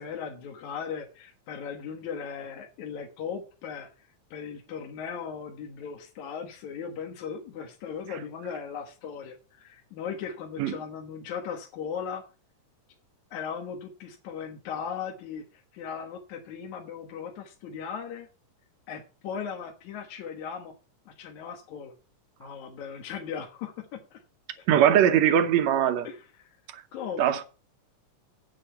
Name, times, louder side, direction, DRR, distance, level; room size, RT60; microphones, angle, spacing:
voice 1, 0.0-12.2 13.3-18.3 18.9-20.7 21.1-21.9 22.4-24.2 26.0-26.5 26.9-27.4, left 7 dB, 65° left, 2.5 m, -38 dB
voice 2, 24.7-26.1 27.2-27.4, right 10 dB, 70° right, 1.8 m, -21 dB
8.5 x 8.3 x 5.6 m
omnidirectional pair, 3.8 m